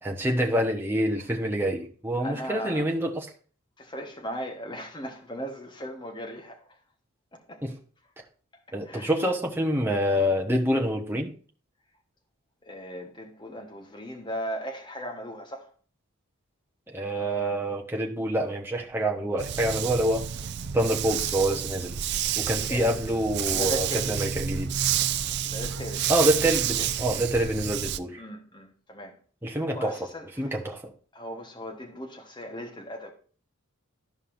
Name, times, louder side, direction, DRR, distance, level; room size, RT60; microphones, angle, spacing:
voice 1, 0.0-3.3 7.6-7.7 8.7-11.3 16.9-20.2 20.7-22.0 22.3-24.7 26.1-28.2 29.4-29.9 30.4-30.9, right 1 dB, 10° right, 0.9 m, -26 dB
voice 2, 2.2-2.9 3.8-6.8 7.3-7.6 8.8-9.2 12.6-15.7 22.6-23.2 23.5-24.1 25.4-26.9 28.2-29.2 29.7-30.6 31.1-33.1, equal, 20° left, 1.1 m, -38 dB
Dog, 19.4-28.0, right 9 dB, 50° right, 0.4 m, -29 dB
13.0 x 5.3 x 2.6 m
head